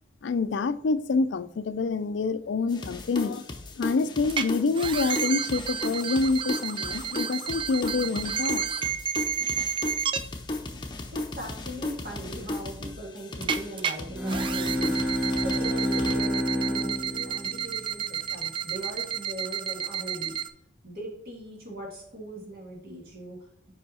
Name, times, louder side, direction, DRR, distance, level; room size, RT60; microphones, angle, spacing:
voice 1, 0.2-3.4 3.8-8.7, left 4 dB, 75° left, 0.4 m, -27 dB
sound 1, 2.7-16.2, left 2 dB, 25° left, 0.7 m, -36 dB
sound 2, 4.3-4.4 4.8-10.2 13.4-13.9 14.3-20.5, right 7 dB, 25° right, 0.3 m, -31 dB
voice 2, 11.1-20.4 20.8-23.4, right 1 dB, 50° right, 1.9 m, -40 dB
Bowed string instrument, 14.1-18.6, equal, 10° right, 0.8 m, -29 dB
5.4 x 5.0 x 4.2 m
head